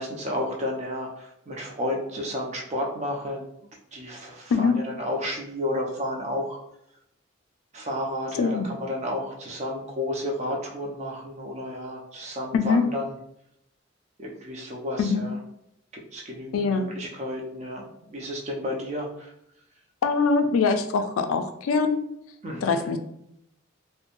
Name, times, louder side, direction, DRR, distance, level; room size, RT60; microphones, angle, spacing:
voice 1, 0.0-3.5 3.9-6.6 7.7-13.2 14.2-15.4 16.1-17.8 18.1-19.3 22.4-22.8, left 1 dB, 35° right, -1 dB, 0.5 m, -32 dB
voice 2, 8.4-8.7 12.5-12.8 15.0-15.2 16.5-16.9 20.0-22.0 22.6-23.0, left 4 dB, 85° left, 8 dB, 0.3 m, -23 dB
3.0 x 2.1 x 2.5 m, 0.77 s
head